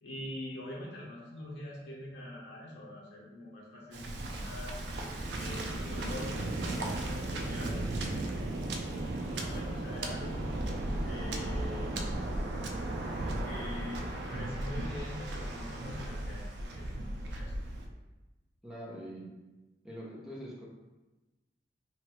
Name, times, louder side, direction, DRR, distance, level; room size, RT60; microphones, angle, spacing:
voice 1, 0.0-4.7 5.3-8.2 9.3-10.5 11.0-12.0 13.1-17.5, left 1 dB, 90° left, -4 dB, 0.7 m, -44 dB
Waves surf, 3.9-17.9, right 1 dB, 70° right, 0.4 m, -35 dB
voice 2, 18.6-19.3 19.8-20.7, equal, 5° right, -6 dB, 0.5 m, -43 dB
3.0 x 2.3 x 2.9 m, 1.1 s
head